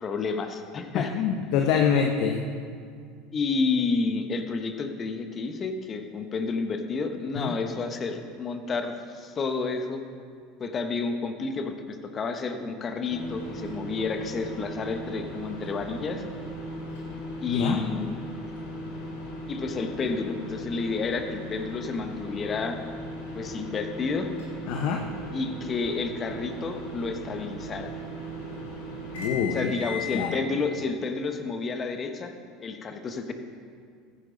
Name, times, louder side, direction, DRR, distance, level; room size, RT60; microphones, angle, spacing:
voice 1, 0.0-1.1 3.3-10.0 10.6-16.2 17.4-18.2 19.5-22.8 23.3-24.3 25.3-27.9 29.5-32.3 32.6-33.3, left 4 dB, 35° left, 6 dB, 1.1 m, -30 dB
voice 2, 0.9-2.4 7.3-7.5 17.5-17.8 24.7-25.0 29.1-29.7 30.1-30.4, left 7 dB, 65° left, 3 dB, 0.9 m, -25 dB
sound 1, 13.1-30.3, equal, 85° left, 2.8 m, -38 dB
14.5 x 9.7 x 3.9 m, 2.2 s
hypercardioid pair, 80°, 0 cm